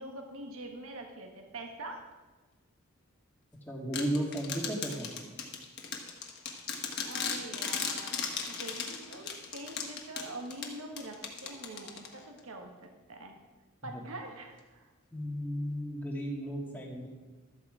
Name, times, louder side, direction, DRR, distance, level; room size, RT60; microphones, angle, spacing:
voice 1, 0.0-2.0 7.0-13.3 13.8-14.9, right 2 dB, 75° right, 3 dB, 1.3 m, -44 dB
voice 2, 3.7-5.1 15.1-17.1, equal, 10° left, -1 dB, 1.7 m, -34 dB
sound 1, 3.9-12.4, left 6 dB, 50° left, 1.4 m, -37 dB
12.5 x 8.4 x 4.8 m, 1.3 s
head